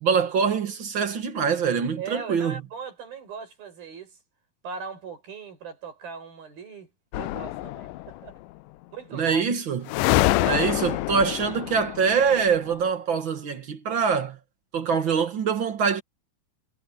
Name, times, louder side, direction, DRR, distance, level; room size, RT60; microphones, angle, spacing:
voice 1, 0.0-2.5 9.1-9.9 10.4-14.4 14.7-16.0, right 6 dB, 50° right, 1.5 m, -24 dB
voice 2, 2.0-4.2 4.6-8.4 8.9-9.5 10.3-10.6, right 6 dB, 75° right, 8.2 m, -39 dB
sound 1, 7.1-8.3 9.9-12.7, left 18 dB, 85° left, 1.9 m, -26 dB
omnidirectional pair, 4.3 m